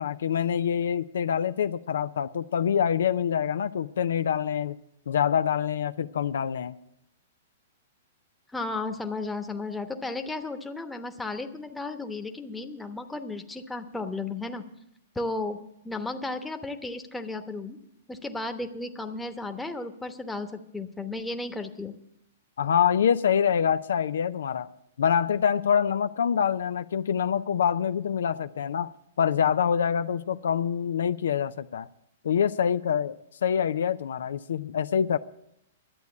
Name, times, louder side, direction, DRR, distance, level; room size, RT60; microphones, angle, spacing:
voice 1, 0.0-4.8 5.1-6.7 22.6-24.7 25.0-28.9 29.2-31.9 32.2-35.2, left 8 dB, 75° left, 12 dB, 0.4 m, -25 dB
voice 2, 8.5-14.6 15.1-15.6 15.8-17.8 18.1-21.9, left 2 dB, 5° left, 5 dB, 1.0 m, -34 dB
11.5 x 8.1 x 8.3 m, 0.79 s
hypercardioid pair, 125°, 0 cm